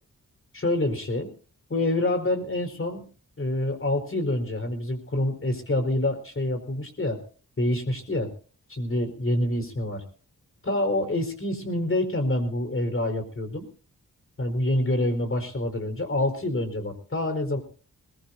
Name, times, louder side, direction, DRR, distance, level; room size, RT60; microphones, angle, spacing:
voice 1, 0.5-1.3 1.7-3.1 3.4-7.2 7.6-8.3 8.7-10.0 10.6-13.7 14.4-17.6, left 1 dB, 40° left, 7 dB, 4.4 m, -27 dB
21.0 x 20.0 x 2.7 m, 0.40 s
cardioid pair, 80°, 33 cm